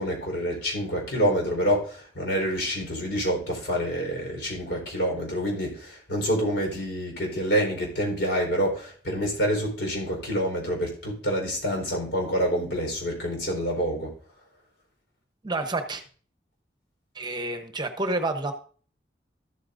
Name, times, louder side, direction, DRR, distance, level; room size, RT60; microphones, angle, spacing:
voice 1, 0.0-14.1, equal, 80° left, 1 dB, 4.1 m, -27 dB
voice 2, 15.4-16.0 17.1-18.5, right 2 dB, 25° right, 7 dB, 0.9 m, -29 dB
13.0 x 8.5 x 2.6 m, 0.43 s
head